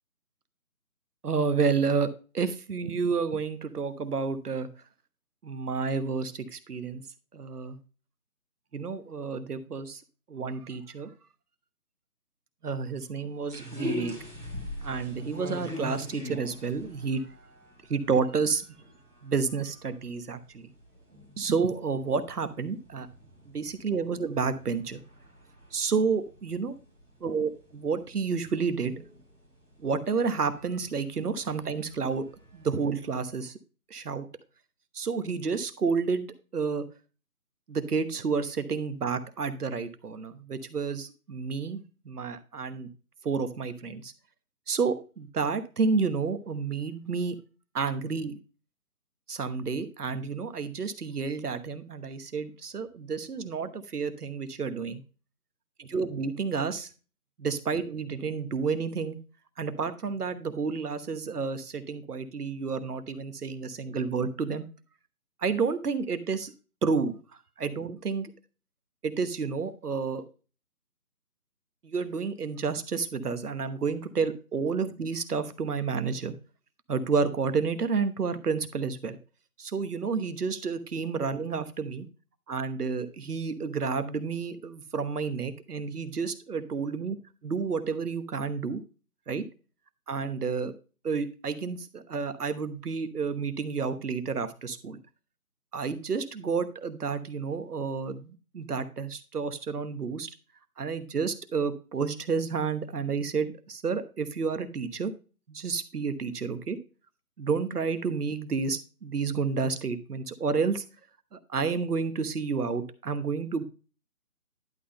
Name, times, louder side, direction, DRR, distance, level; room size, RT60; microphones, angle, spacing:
voice 1, 1.2-2.1 2.3-4.7 5.4-7.0 7.3-7.8 8.7-10.0 10.3-11.1 12.6-14.1 14.8-17.2 17.9-18.6 19.2-20.7 21.4-23.1 23.5-25.0 25.7-26.7 27.2-29.0 29.8-32.2 32.5-33.6 33.9-34.3 34.9-36.3 36.5-36.8 37.7-42.9 43.2-44.1 44.7-47.4 47.7-48.4 49.3-55.0 55.8-56.9 57.4-59.2 59.6-64.7 65.4-66.5 66.8-67.2 67.6-68.3 69.0-70.2 71.8-76.3 76.9-79.2 79.6-82.1 82.5-87.2 87.4-88.8 89.3-89.4 90.1-90.7 91.0-95.0 95.7-100.3 100.8-105.1 105.5-106.8 107.4-110.8 111.3-113.6, right 5 dB, 75° right, 12 dB, 1.2 m, -30 dB
sound 1, 13.5-33.2, left 1 dB, 5° left, 1.3 m, -44 dB
11.0 x 3.9 x 5.0 m, 0.35 s
figure-of-eight pair, 165°, 46 cm